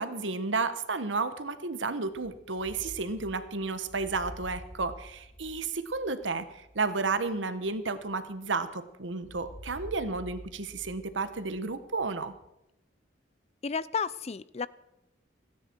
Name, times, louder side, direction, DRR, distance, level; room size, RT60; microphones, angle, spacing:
voice 1, 0.0-12.3, right 3 dB, 85° right, 11 dB, 1.2 m, -32 dB
sound 1, 2.1-8.7 9.2-12.4, equal, 55° left, 6.1 m, -49 dB
voice 2, 13.6-14.7, left 5 dB, 35° left, 18 dB, 0.5 m, -32 dB
29.5 x 10.0 x 4.6 m, 0.88 s
head